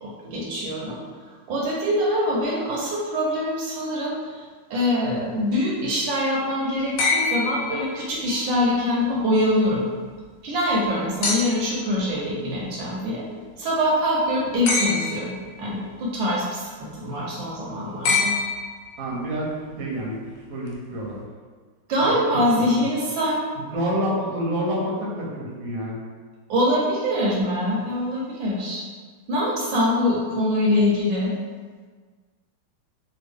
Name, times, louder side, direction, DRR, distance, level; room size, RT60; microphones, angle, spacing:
voice 1, 0.0-1.0 1.5-4.4 4.7-9.9 10.4-13.2 13.6-18.3 21.9-23.4 26.5-28.9 29.3-31.3, left 1 dB, 75° right, -4 dB, 1.3 m, -24 dB
sound 1, 7.0-8.4 11.2-11.8 14.7-15.5 18.0-19.1 20.7-20.8, left 4 dB, 75° left, 1.3 m, -25 dB
voice 2, 19.0-19.5 19.8-20.2 20.5-21.2 22.0-22.1 22.5-22.9 23.6-26.0, equal, 60° right, -4 dB, 1.0 m, -28 dB
3.5 x 2.2 x 3.4 m, 1.5 s
omnidirectional pair, 2.2 m